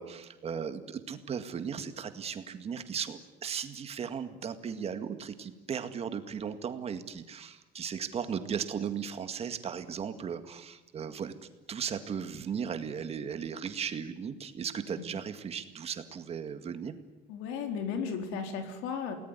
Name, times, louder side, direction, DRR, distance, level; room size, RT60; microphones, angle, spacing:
voice 1, 0.0-11.3 11.7-16.9, right 7 dB, 30° right, 9 dB, 2.0 m, -36 dB
voice 2, 17.3-19.2, left 6 dB, 90° left, 6 dB, 4.1 m, -35 dB
28.5 x 19.5 x 9.8 m, 1.1 s
cardioid pair, 165°, 21 cm